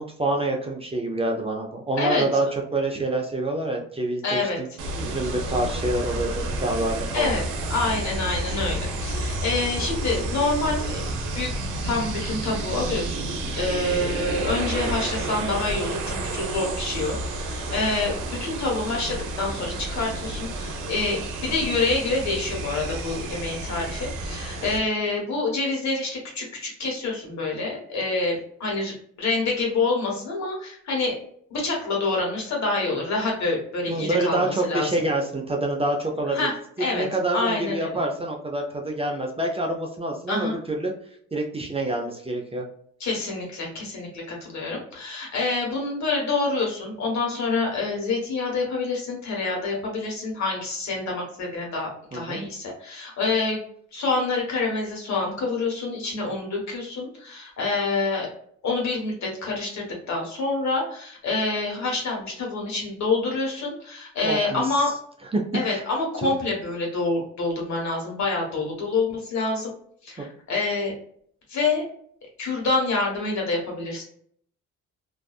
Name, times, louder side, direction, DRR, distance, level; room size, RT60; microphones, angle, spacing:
voice 1, 0.0-2.5 2.7-4.7 5.0-7.3 33.9-36.4 36.9-40.9 41.3-42.6 52.1-52.5 64.2-64.8 65.3-65.4 65.7-65.8 66.2-66.3 70.2-70.3, right 2 dB, 20° right, 1 dB, 0.5 m, -27 dB
voice 2, 4.2-4.6 7.1-7.4 7.7-11.0 11.3-11.5 11.8-13.3 13.6-18.1 18.4-31.2 31.5-34.9 36.3-38.0 40.3-40.6 43.0-53.6 53.9-58.3 58.6-64.9 65.5-69.7 70.0-70.9 71.5-71.8 72.4-74.0, left 3 dB, 65° left, -1 dB, 1.3 m, -27 dB
sound 1, 4.8-24.8, right 2 dB, 85° right, 0.6 m, -30 dB
2.6 x 2.4 x 2.3 m, 0.62 s
cardioid pair, 90°, 30 cm